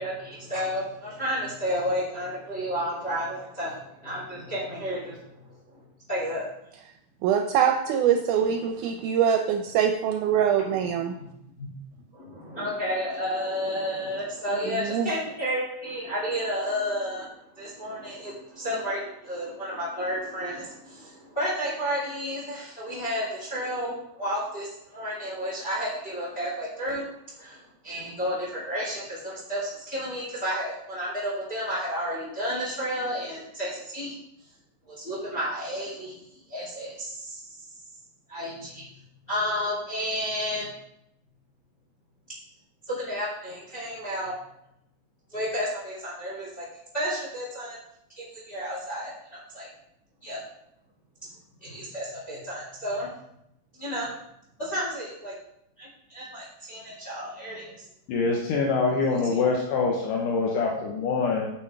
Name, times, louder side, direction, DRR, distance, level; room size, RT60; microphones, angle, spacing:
voice 1, 0.0-5.6 6.1-6.5 10.8-10.9 11.1-11.2 11.6-11.7 12.1-27.1 27.4-34.1 34.9-37.6 38.3-38.8 39.3-40.7 42.9-44.3 45.3-46.7 46.9-47.8 48.2-49.7 50.2-50.4 51.6-53.1 53.8-54.1 54.6-55.3 55.8-57.7 59.3-59.4, equal, 20° left, -5 dB, 2.3 m, -31 dB
voice 2, 7.2-11.2 14.7-15.1, right 8 dB, 80° right, 4 dB, 2.0 m, -24 dB
voice 3, 58.1-61.5, left 4 dB, 80° left, -1 dB, 2.5 m, -25 dB
9.0 x 6.5 x 3.3 m, 0.79 s
omnidirectional pair, 3.7 m